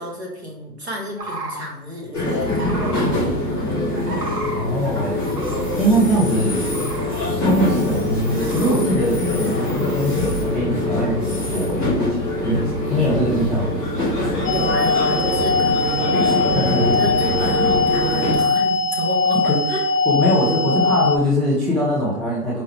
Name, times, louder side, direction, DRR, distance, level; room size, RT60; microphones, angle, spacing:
voice 1, 0.0-4.2 14.5-16.1 16.7-19.4 19.7-19.8, left 1 dB, 40° right, -1 dB, 1.0 m, -32 dB
sound 1, 1.2-1.6 2.5-3.1 3.9-6.2 6.6-7.2 7.6-7.7 8.2-8.9 9.4-11.4 11.6-12.0 12.4-13.0 13.5-13.6 14.1-14.9 15.4-16.1 16.4-17.0 17.3-17.8 18.9-19.5, right 2 dB, 70° right, 1.3 m, -36 dB
sound 2, 2.1-18.4, left 1 dB, 15° right, 1.1 m, -23 dB
voice 2, 4.5-5.1 5.8-6.6 7.3-11.8 12.4-12.6 12.9-13.8 16.3-16.9 19.4-19.6 20.1-22.6, equal, ahead, -6 dB, 0.4 m, -21 dB
sound 3, 14.5-21.2, left 3 dB, 90° left, 0.6 m, -20 dB
4.6 x 3.0 x 2.9 m, 0.84 s
hypercardioid pair, 180°, 49 cm